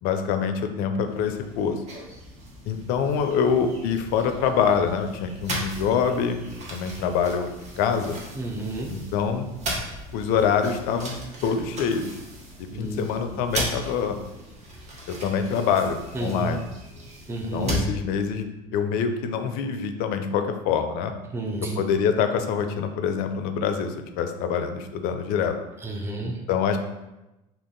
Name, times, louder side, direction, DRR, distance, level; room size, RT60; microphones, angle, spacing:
voice 1, 0.0-1.8 2.7-6.4 6.7-7.5 7.8-8.2 8.9-9.5 10.1-12.2 12.6-14.2 15.1-16.7 17.5-18.5 18.7-21.1 21.8-25.6 26.2-26.8, left 6 dB, 55° left, 7 dB, 0.5 m, -25 dB
sound 1, 1.0-17.9, equal, 40° right, 1.0 m, -37 dB
voice 2, 8.4-8.9 12.7-13.0 16.1-16.5 17.3-17.7 21.3-21.8 25.8-26.3, right 2 dB, 15° right, 1 dB, 0.6 m, -30 dB
2.8 x 2.6 x 3.8 m, 0.99 s
hypercardioid pair, 75°, 18 cm